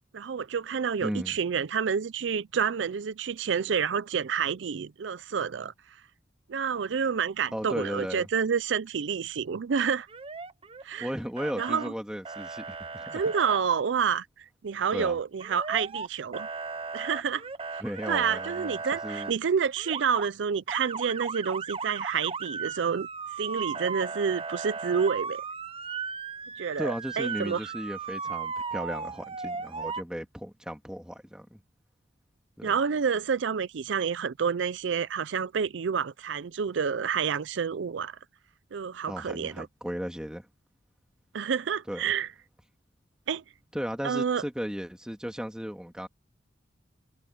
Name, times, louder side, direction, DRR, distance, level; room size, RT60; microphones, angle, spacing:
voice 1, 0.1-5.7 6.5-10.1 10.8-11.1 11.6-11.9 13.1-16.5 16.9-17.4 17.7-23.1 23.4-25.4 26.6-27.6 32.6-38.2 38.7-39.7 41.3-42.3 43.3-43.4 44.0-44.4, right 6 dB, 80° right, 0.5 m, -29 dB
voice 2, 1.0-1.4 7.5-8.3 11.0-13.2 14.9-15.2 17.8-18.8 19.0-19.3 26.8-31.6 32.6-32.7 39.1-40.5 41.9-42.1 43.7-46.1, equal, 5° right, 2.3 m, -35 dB
Motor vehicle (road) / Siren, 10.1-11.1 11.4-11.9 12.2-13.6 15.4-16.1 16.3-19.3 19.8-20.3 20.7-30.0, right 5 dB, 30° right, 0.8 m, -36 dB
head